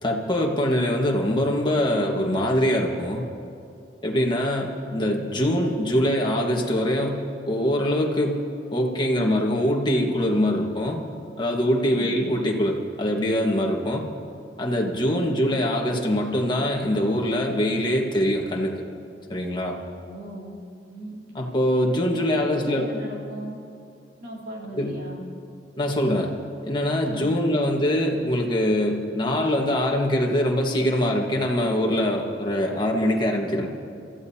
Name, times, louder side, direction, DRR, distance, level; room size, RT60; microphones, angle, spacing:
voice 1, 0.0-3.2 4.0-8.4 8.7-11.0 11.4-14.1 14.6-18.8 19.3-19.8 21.3-22.9 24.7-25.0 25.8-26.3 26.6-33.7, equal, 25° left, 0 dB, 1.4 m, -23 dB
voice 2, 20.1-20.6 20.9-21.1 22.1-23.6 24.2-25.2 27.1-27.6, right 1 dB, 60° right, -4 dB, 3.2 m, -38 dB
29.5 x 14.0 x 2.8 m, 2.5 s
head